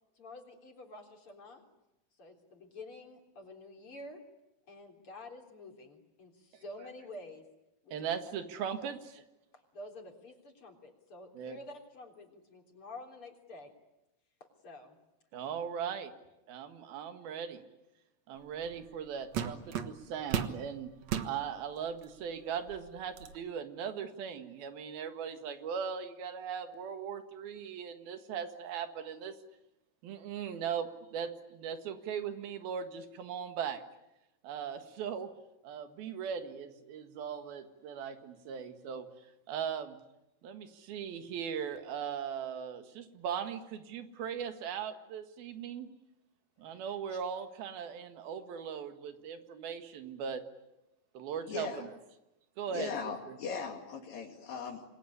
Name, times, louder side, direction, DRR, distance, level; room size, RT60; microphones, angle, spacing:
voice 1, 0.2-1.6 2.2-4.2 4.7-7.4 7.8-8.1 8.8-8.9 9.7-13.7 14.6-15.0, left 2 dB, 35° left, 2 dB, 4.2 m, -49 dB
voice 2, 7.9-9.0 11.4-11.6 15.3-16.1 16.5-17.7 18.3-20.9 21.2-29.4 30.0-33.8 34.4-35.3 35.6-39.1 39.5-40.0 40.4-45.9 46.6-50.4 51.2-51.9 52.6-52.9 53.3-53.4, right 7 dB, 85° right, 7 dB, 3.7 m, -39 dB
sound 1, 18.6-18.8 19.3-20.6 21.0-21.3 22.0-22.1 22.6-23.4, right 8 dB, 55° right, 2.3 m, -35 dB
voice 3, 51.4-51.9 52.7-54.8, left 5 dB, 70° left, 2 dB, 4.1 m, -39 dB
27.5 x 21.0 x 9.9 m, 0.96 s
omnidirectional pair, 4.2 m